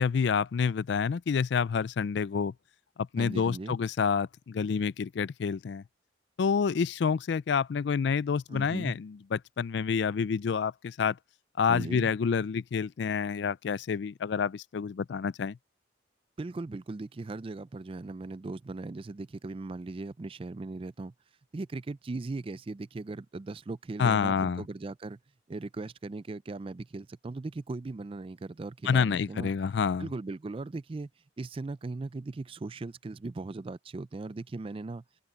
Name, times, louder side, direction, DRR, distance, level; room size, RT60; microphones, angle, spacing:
voice 1, 0.0-2.5 3.0-5.8 6.4-11.2 11.6-15.6 24.0-24.6 28.8-30.1, left 6 dB, 60° left, 0.4 m, -28 dB
voice 2, 3.2-3.8 8.5-8.9 11.7-12.1 16.4-21.1 21.5-25.2 25.5-29.5 30.0-31.1 31.4-35.0, right 3 dB, 30° right, 0.4 m, -38 dB
open air
head